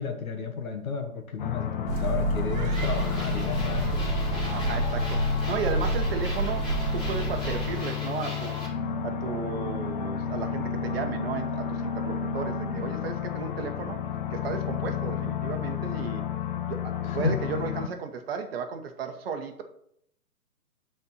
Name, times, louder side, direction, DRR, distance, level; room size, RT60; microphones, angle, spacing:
voice 1, 0.0-4.0 17.0-17.4, left 5 dB, 70° left, 5 dB, 1.6 m, -32 dB
sound 1, 1.4-17.9, left 8 dB, 35° left, 0.6 m, -32 dB
sound 2, 1.9-7.8, right 2 dB, 60° right, 1.3 m, -29 dB
sound 3, 2.7-8.7, left 1 dB, 10° left, 2.1 m, -40 dB
voice 2, 4.5-8.7 9.0-14.0 14.3-16.2 16.7-19.6, right 5 dB, 40° right, 6 dB, 1.1 m, -34 dB
11.5 x 4.4 x 4.2 m, 0.71 s
hypercardioid pair, 145°, 44 cm